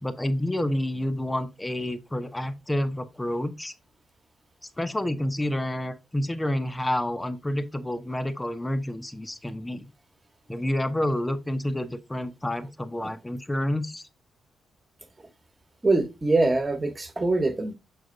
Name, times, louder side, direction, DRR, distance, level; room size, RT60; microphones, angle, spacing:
voice 1, 0.0-3.7 4.8-9.9 10.5-14.0, left 1 dB, 15° left, 0.9 m, -29 dB
voice 2, 15.8-17.7, right 2 dB, 30° right, 1.4 m, -23 dB
6.6 x 4.2 x 3.8 m
supercardioid pair, 50°, 0 cm